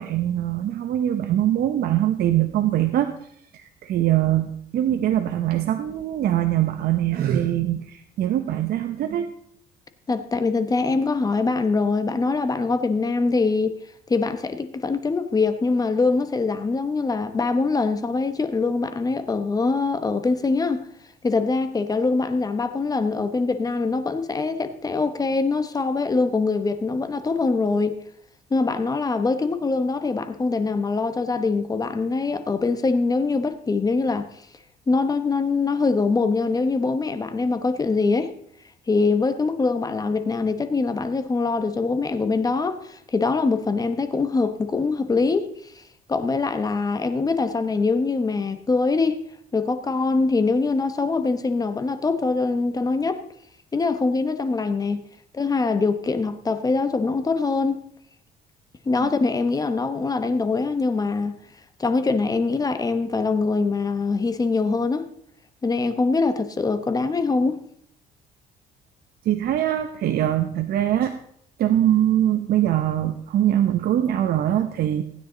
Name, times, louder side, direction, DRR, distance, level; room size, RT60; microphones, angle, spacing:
voice 1, 0.0-3.1 3.5-9.3 59.0-59.1 69.2-71.1 71.6-75.0, right 12 dB, 65° right, 0.9 m, -22 dB
voice 2, 10.1-13.8 14.1-20.9 21.2-28.0 28.5-34.3 34.9-38.3 38.9-45.8 46.1-49.2 49.5-53.2 53.7-55.0 55.3-57.8 58.8-61.4 61.8-65.1 65.6-67.6, left 4 dB, 20° left, 1.1 m, -23 dB
16.0 x 9.4 x 3.9 m
cardioid pair, 110°, 17 cm